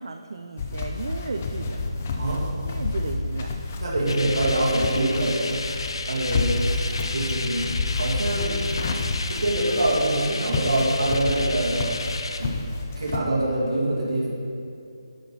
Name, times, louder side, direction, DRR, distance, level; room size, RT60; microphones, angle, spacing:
voice 1, 0.0-1.8 2.6-3.6, right 3 dB, 55° right, 6 dB, 0.4 m, -34 dB
sound 1, 0.6-13.2, left 3 dB, 20° left, 0.4 m, -29 dB
voice 2, 3.8-5.7 6.1-7.6 8.0-8.6 9.3-11.9 12.4-12.6 13.0-14.3, right 1 dB, 75° right, -5 dB, 2.2 m, -25 dB
sound 2, 4.1-12.4, left 3 dB, 65° left, 0.7 m, -33 dB
11.0 x 4.4 x 5.6 m, 2.6 s
hypercardioid pair, 175°, 3 cm